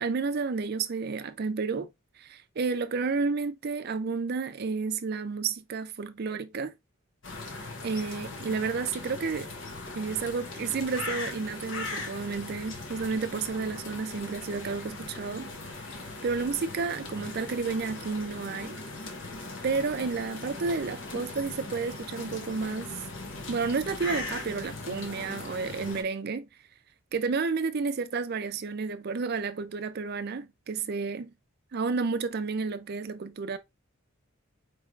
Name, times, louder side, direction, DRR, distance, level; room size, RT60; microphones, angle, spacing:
voice 1, 0.0-1.9 2.2-6.7 7.8-9.5 9.9-15.5 15.9-18.8 19.6-23.0 23.5-26.5 27.1-31.3 31.7-33.6, right 4 dB, 45° right, 0.4 m, -31 dB
sound 1, 7.2-26.0, left 3 dB, 60° left, 0.8 m, -39 dB
4.6 x 3.2 x 2.4 m
head